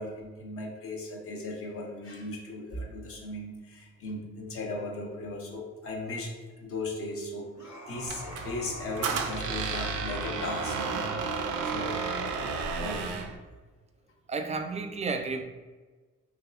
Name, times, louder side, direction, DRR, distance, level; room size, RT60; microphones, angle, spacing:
voice 1, 0.0-7.5 7.9-12.0 12.4-13.2, left 2 dB, 50° left, 0 dB, 0.8 m, -37 dB
sound 1, 7.5-11.0, left 1 dB, 70° left, 1.2 m, -43 dB
Squeak, 8.1-13.4, right 5 dB, 85° right, 0.5 m, -32 dB
voice 2, 14.3-15.4, right 4 dB, 25° right, 5 dB, 0.3 m, -32 dB
3.4 x 3.2 x 2.4 m, 1.3 s
cardioid pair, 90°, 30 cm